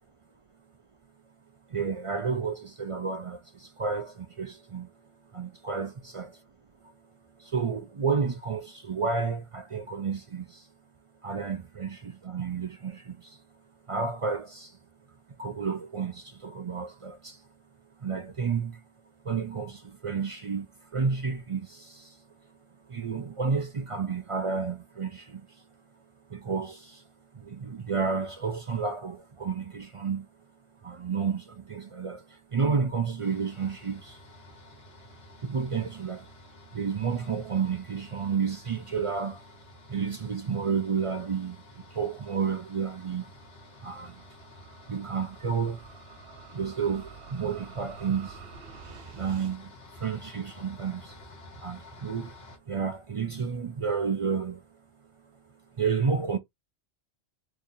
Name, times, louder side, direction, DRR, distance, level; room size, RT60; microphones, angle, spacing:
voice 1, 1.7-4.9 5.3-6.4 6.8-6.9 7.4-10.7 11.2-13.4 13.9-14.8 15.4-17.4 18.0-18.8 19.2-22.2 22.9-25.6 26.3-27.0 27.3-30.3 30.8-34.2 35.4-36.3 36.7-39.5 39.9-43.3 43.8-44.2 44.9-45.9 46.5-48.4 49.1-51.2 51.6-52.3 52.7-54.6 55.8-56.4, right 5 dB, 50° right, 0.3 m, -31 dB
sound 1, 33.2-52.6, left 2 dB, 70° left, 1.3 m, -51 dB
sound 2, 41.7-49.6, right 8 dB, 65° right, 0.7 m, -50 dB
3.0 x 2.7 x 3.8 m
omnidirectional pair, 1.1 m